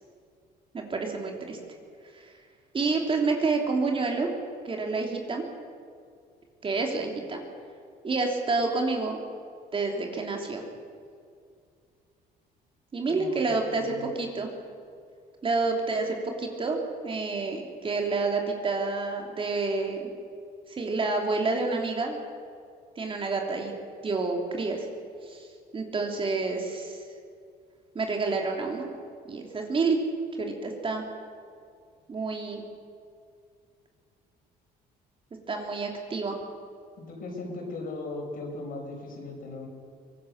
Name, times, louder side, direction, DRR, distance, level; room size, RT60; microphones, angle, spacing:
voice 1, 0.7-1.6 2.7-4.3 4.6-5.4 6.6-7.4 8.0-9.2 9.7-10.6 12.9-14.5 15.4-20.1 20.7-22.2 22.9-24.8 25.2-25.5 25.7-27.0 27.9-28.9 29.2-30.0 30.4-31.0 32.1-32.6 35.5-36.4, right 3 dB, 30° right, 2 dB, 3.2 m, -28 dB
voice 2, 13.1-13.4 13.7-14.1 37.0-39.7, left 2 dB, 55° left, 0 dB, 6.4 m, -38 dB
23.5 x 18.5 x 6.7 m, 2.3 s
cardioid pair, 110°, 17 cm